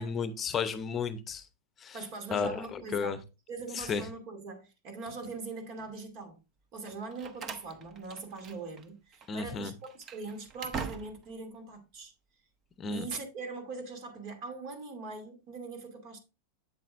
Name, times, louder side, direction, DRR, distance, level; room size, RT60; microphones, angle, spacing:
voice 1, 0.0-1.4 1.8-2.0 2.3-3.2 3.7-4.0 9.3-9.7 12.8-13.0, left 5 dB, 25° left, 0.8 m, -33 dB
voice 2, 1.9-3.2 3.5-6.4 6.7-12.1 12.9-16.2, right 3 dB, 55° right, 2.5 m, -41 dB
Slam, 6.8-8.9 9.1-9.3 9.8-11.4, right 6 dB, 35° right, 0.9 m, -42 dB
7.9 x 7.5 x 2.5 m
hypercardioid pair, 120°, 0 cm